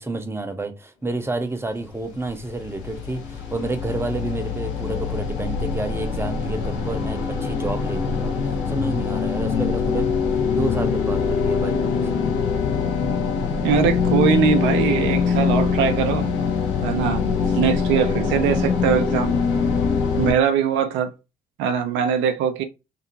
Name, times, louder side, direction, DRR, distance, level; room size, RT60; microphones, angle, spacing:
voice 1, 0.0-8.3 8.7-12.2, right 2 dB, 10° right, 0.7 m, -29 dB
sound 1, 1.9-20.3, left 5 dB, 70° left, 0.7 m, -23 dB
voice 2, 13.6-16.3 16.8-17.2 17.5-19.4 20.2-21.2 21.6-22.6, right 7 dB, 70° right, 0.5 m, -21 dB
2.6 x 2.6 x 2.8 m
hypercardioid pair, 45°, 20 cm